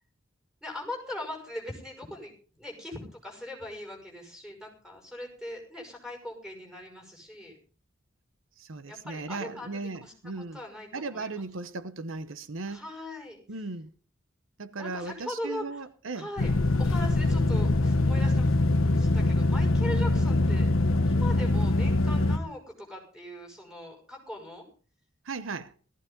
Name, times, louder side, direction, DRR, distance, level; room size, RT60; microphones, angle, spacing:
voice 1, 0.6-2.3 2.6-7.6 8.9-10.1 10.5-11.4 12.7-13.4 14.8-15.9 16.1-16.5 16.8-18.6 19.0-20.7 21.1-24.6, left 1 dB, 5° right, 6.0 m, -40 dB
voice 2, 8.6-10.6 10.9-12.9 13.5-13.9 14.6-16.3 25.2-25.7, right 3 dB, 80° right, 0.9 m, -37 dB
sound 1, 16.4-22.4, left 2 dB, 90° left, 1.0 m, -23 dB
17.5 x 15.0 x 3.9 m
head